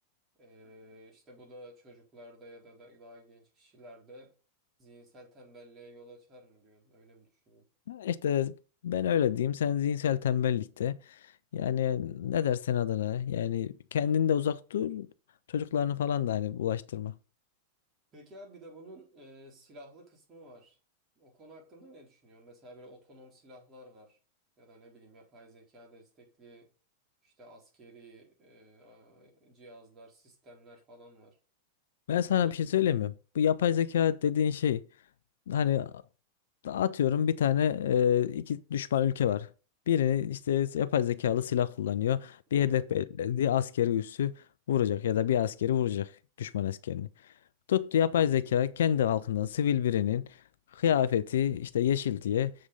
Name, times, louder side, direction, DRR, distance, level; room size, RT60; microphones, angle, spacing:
voice 1, 0.4-4.3 4.8-7.7 18.1-20.8 21.2-24.2 24.6-26.7 27.2-31.4 32.2-32.6 42.5-43.0, right 1 dB, 25° right, 4.1 m, -53 dB
voice 2, 7.9-8.5 8.8-11.2 11.5-15.1 15.5-17.1 32.1-34.8 35.5-35.9 36.6-39.5 39.9-44.3 44.7-47.1 47.7-50.3 50.7-52.5, left 9 dB, 60° left, 0.4 m, -28 dB
7.5 x 6.1 x 5.3 m
figure-of-eight pair, 90°, 0 cm